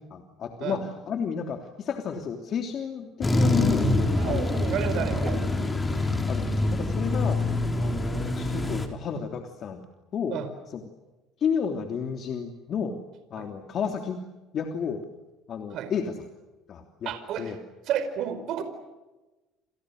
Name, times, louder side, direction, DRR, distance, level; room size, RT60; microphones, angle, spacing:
voice 1, 0.1-4.5 5.2-5.4 6.3-7.4 7.8-9.8 10.1-10.4 10.7-10.8 11.4-13.0 13.3-14.2 14.5-15.0 15.5-16.1 16.7-17.1 17.4-17.6, left 6 dB, 45° left, 4 dB, 3.2 m, -31 dB
sound 1, 3.2-8.9, left 2 dB, 15° left, 4.2 m, -25 dB
voice 2, 4.1-5.5 5.9-6.1 10.3-10.5 13.4-13.5 15.7-15.9 17.0-17.5 17.9-18.6, right 9 dB, 55° right, 9 dB, 4.7 m, -31 dB
29.5 x 28.5 x 6.6 m, 1.1 s
cardioid pair, 125°, 0 cm